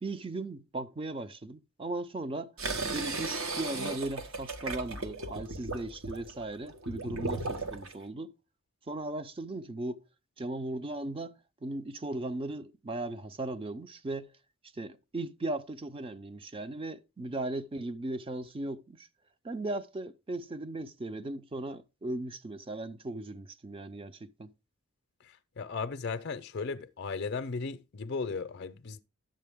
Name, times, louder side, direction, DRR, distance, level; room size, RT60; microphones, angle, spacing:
voice 1, 0.0-2.5 2.9-8.3 8.9-10.0 10.4-14.3 14.7-19.1 19.4-24.5, right 2 dB, 25° right, 0.5 m, -37 dB
sound 1, 2.6-7.9, right 3 dB, 70° right, 1.1 m, -36 dB
voice 2, 25.6-29.0, left 4 dB, 50° left, 0.5 m, -36 dB
10.5 x 7.5 x 3.5 m
head